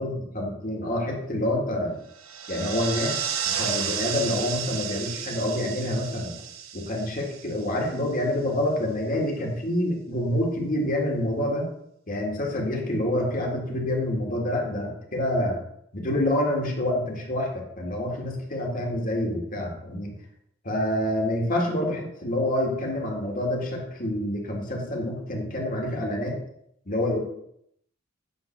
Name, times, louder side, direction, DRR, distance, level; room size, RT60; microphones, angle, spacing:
voice 1, 0.0-2.0 2.5-6.3 6.7-11.7 12.1-15.6 15.9-20.1 20.6-26.4 26.9-27.2, left 1 dB, 40° left, -1 dB, 2.0 m, -27 dB
sound 1, 2.1-8.0, right 8 dB, 80° right, 0.9 m, -32 dB
9.5 x 3.9 x 6.6 m, 0.74 s
head